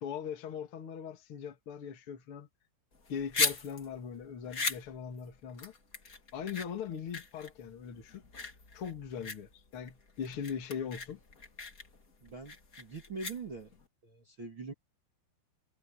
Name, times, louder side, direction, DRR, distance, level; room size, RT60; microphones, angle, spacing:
voice 1, 0.0-2.5 3.1-5.7 6.3-8.2 8.7-11.2, left 7 dB, 45° left, 1.8 m, -40 dB
sound 1, 2.9-13.8, left 4 dB, 80° left, 0.7 m, -38 dB
voice 2, 12.2-13.7 14.0-14.7, right 4 dB, 35° right, 2.2 m, -43 dB
omnidirectional pair, 5.8 m